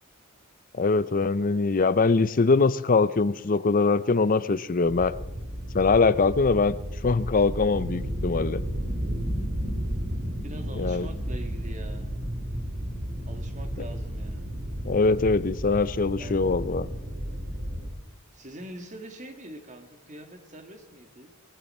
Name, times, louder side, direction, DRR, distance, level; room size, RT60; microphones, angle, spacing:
voice 1, 0.8-5.1 5.7-6.7 7.0-8.6 10.8-11.1 14.9-16.9, left 4 dB, 40° left, 16 dB, 0.6 m, -22 dB
sound 1, 4.8-17.9, equal, 60° right, 3.0 m, -33 dB
voice 2, 10.4-12.1 13.3-14.5 16.2-16.5 18.3-21.3, right 1 dB, 35° right, 6 dB, 1.9 m, -44 dB
20.0 x 15.5 x 4.3 m, 1.0 s
head